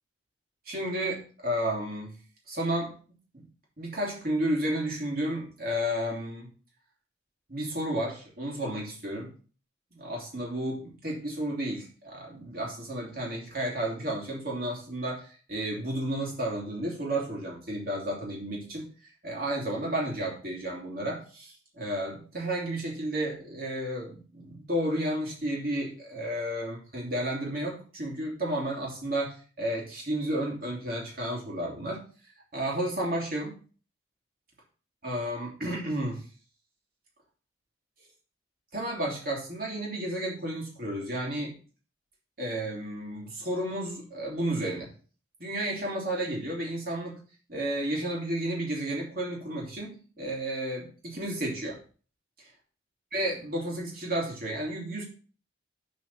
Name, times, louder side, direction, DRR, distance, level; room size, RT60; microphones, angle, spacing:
voice 1, 0.6-2.2 2.5-2.9 3.3-3.4 3.8-6.5 7.5-9.3 9.9-32.0 32.5-33.6 35.0-36.2 38.7-41.5 42.4-44.9 45.4-47.2 47.5-51.8 52.4-52.5 53.1-55.0, right 1 dB, 50° right, -3 dB, 3.2 m, -32 dB
7.2 x 4.9 x 5.8 m, 0.39 s
head